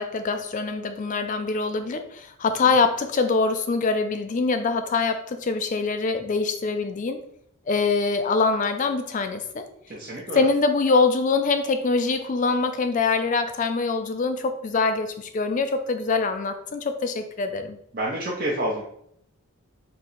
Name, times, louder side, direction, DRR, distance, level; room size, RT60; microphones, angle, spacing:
voice 1, 0.0-7.2 7.7-9.6 10.3-17.8, left 4 dB, 35° left, 8 dB, 0.3 m, -24 dB
voice 2, 9.9-10.4 17.9-18.8, right 1 dB, 40° right, -5 dB, 0.6 m, -28 dB
3.7 x 2.8 x 4.2 m, 0.71 s
head